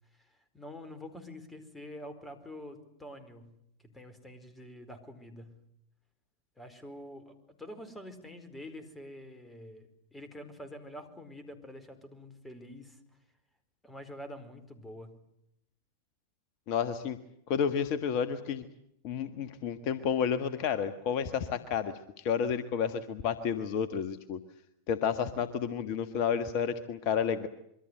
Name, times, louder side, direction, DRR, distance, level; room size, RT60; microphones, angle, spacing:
voice 1, 0.1-5.6 6.6-13.0 13.8-15.2, left 1 dB, 10° left, 10 dB, 4.6 m, -47 dB
voice 2, 16.7-17.2 17.5-18.7 19.0-24.4 24.9-27.5, left 7 dB, 45° left, 11 dB, 1.5 m, -31 dB
27.0 x 23.5 x 8.1 m, 0.77 s
figure-of-eight pair, 90°, 0 cm